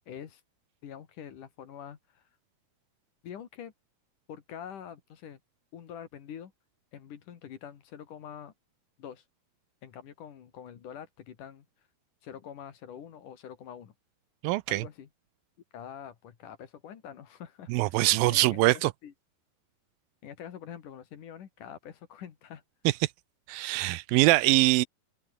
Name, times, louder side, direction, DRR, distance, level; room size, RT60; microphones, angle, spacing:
voice 1, 0.1-0.4 0.8-2.2 3.2-3.7 4.3-5.4 5.7-6.5 6.9-8.5 9.0-9.2 9.8-11.7 12.2-13.9 14.7-15.1 15.7-18.0 18.3-19.1 20.2-22.6, left 9 dB, 60° left, 3.4 m, -45 dB
voice 2, 14.4-14.8 17.7-18.9 23.5-24.9, right 19 dB, 80° right, 2.3 m, -23 dB
omnidirectional pair, 4.3 m